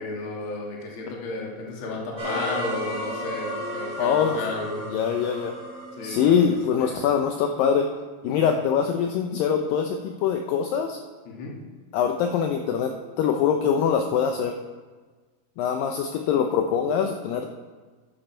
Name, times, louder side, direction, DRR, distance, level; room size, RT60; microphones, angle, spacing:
voice 1, 0.0-4.9 6.0-6.5 6.8-7.0 8.3-8.6 11.2-11.5, left 3 dB, 45° left, -2 dB, 1.8 m, -33 dB
sound 1, 2.2-7.2, equal, 20° right, 4.2 m, -33 dB
voice 2, 4.0-4.4 4.9-5.5 6.0-7.9 8.2-11.0 11.9-14.6 15.6-17.5, left 7 dB, 80° left, 4 dB, 2.1 m, -23 dB
10.5 x 10.5 x 4.4 m, 1.4 s
omnidirectional pair, 4.5 m